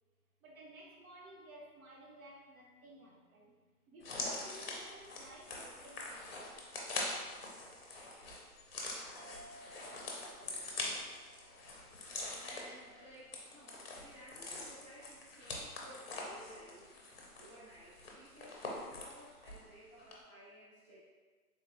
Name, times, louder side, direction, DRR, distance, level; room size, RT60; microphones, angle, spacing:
voice 1, 0.4-3.6 3.9-6.5, right 1 dB, 65° right, -2 dB, 0.7 m, -55 dB
sound 1, 4.0-19.7 20.0-20.1, left 2 dB, 40° left, 0.6 m, -44 dB
sound 2, 9.2-14.1, equal, 45° right, 1.1 m, -60 dB
voice 2, 10.4-11.1 12.4-16.9 17.3-21.0, equal, 20° right, -10 dB, 0.9 m, -56 dB
3.5 x 3.1 x 2.5 m, 1.4 s
hypercardioid pair, 160°, 46 cm